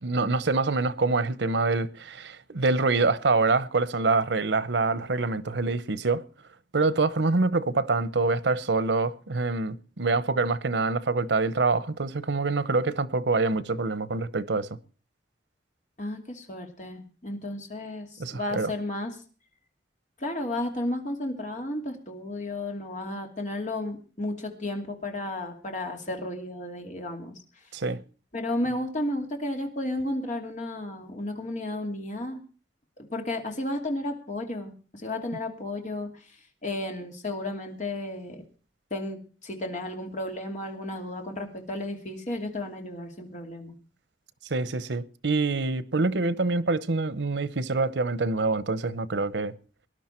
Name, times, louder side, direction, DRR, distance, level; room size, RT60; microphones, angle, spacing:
voice 1, 0.0-6.2 6.7-14.8 18.2-18.7 27.7-28.0 44.5-49.5, right 3 dB, 90° right, 0.9 m, -25 dB
voice 2, 16.0-19.1 20.2-27.3 28.3-32.4 33.1-36.1 36.6-38.4 38.9-43.7, left 1 dB, 45° left, 2.7 m, -33 dB
19.5 x 11.0 x 4.5 m
head